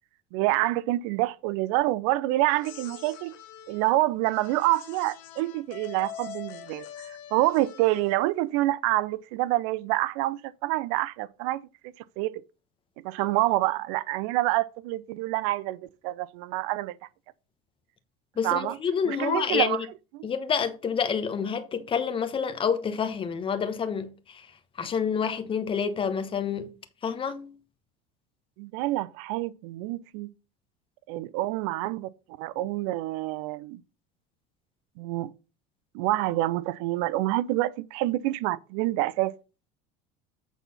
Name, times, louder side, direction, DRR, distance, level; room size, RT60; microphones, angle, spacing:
voice 1, 0.3-3.3 3.7-11.6 12.2-12.4 13.0-17.0 18.4-18.8 19.0-19.8 20.1-20.3 28.6-30.3 31.1-32.1 32.4-33.8 35.0-35.3 35.9-39.4, right 17 dB, 75° right, 0.6 m, -27 dB
sound 1, 2.5-8.4, left 10 dB, 70° left, 1.3 m, -44 dB
voice 2, 18.4-19.8 20.2-24.1 24.8-26.7 27.0-27.6, left 6 dB, 30° left, 1.1 m, -28 dB
8.2 x 4.1 x 5.5 m
supercardioid pair, 120°, 18 cm